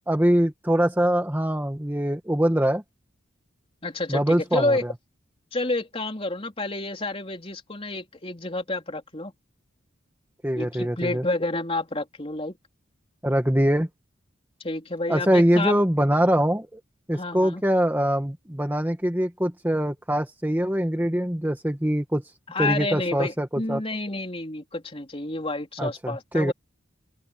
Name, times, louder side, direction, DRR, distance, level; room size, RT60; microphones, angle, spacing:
voice 1, 0.1-2.8 4.1-4.9 10.4-11.2 13.2-13.9 15.1-16.8 17.1-22.2 22.6-23.8 25.8-26.5, equal, 10° right, 1.4 m, -23 dB
voice 2, 3.8-4.8 5.5-9.3 10.6-12.6 14.6-15.8 17.1-17.6 22.5-26.5, left 2 dB, 30° left, 3.7 m, -29 dB
open air
head